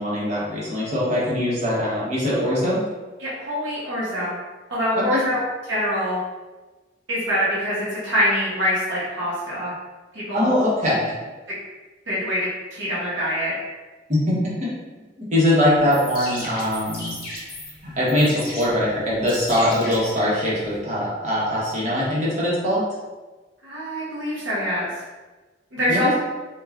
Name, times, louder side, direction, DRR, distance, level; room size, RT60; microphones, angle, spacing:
voice 1, 0.0-2.8 5.1-5.2 10.3-11.1 14.1-14.7 15.2-17.2 17.8-22.8 25.9-26.1, left 1 dB, 40° right, -7 dB, 0.9 m, -22 dB
voice 2, 3.2-4.4 4.7-5.4 5.7-6.2 7.1-9.7 10.1-10.5 12.1-13.5 23.6-24.9 25.7-26.1, equal, 70° right, -8 dB, 0.9 m, -24 dB
sound 1, 15.8-20.8, left 1 dB, 50° left, 0.8 m, -36 dB
3.2 x 2.3 x 2.4 m, 1.2 s
head